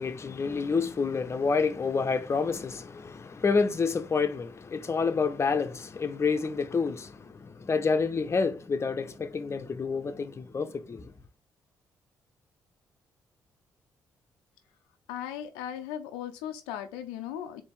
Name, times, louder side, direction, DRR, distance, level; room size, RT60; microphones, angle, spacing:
voice 1, 0.0-11.1, left 5 dB, 35° left, 0.6 m, -28 dB
voice 2, 15.1-17.6, left 10 dB, 90° left, 0.4 m, -37 dB
4.2 x 2.7 x 3.5 m
hypercardioid pair, 50°, 8 cm